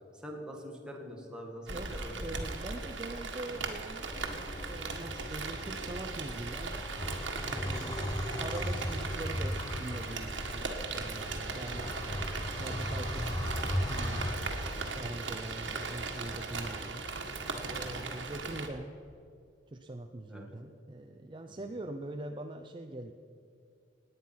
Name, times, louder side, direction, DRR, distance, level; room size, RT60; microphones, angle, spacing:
voice 1, 0.2-2.4 20.3-20.5, equal, 5° right, 0 dB, 2.0 m, -44 dB
voice 2, 1.7-6.8 7.4-8.0 8.4-13.4 13.9-14.6 14.9-17.0 17.7-18.9 19.7-23.1, right 2 dB, 25° right, 5 dB, 0.6 m, -43 dB
Rain, 1.7-18.7, right 4 dB, 85° right, 1.7 m, -38 dB
sound 1, 4.1-15.0, equal, 25° left, 1.1 m, -37 dB
18.0 x 9.6 x 5.9 m, 2.5 s
head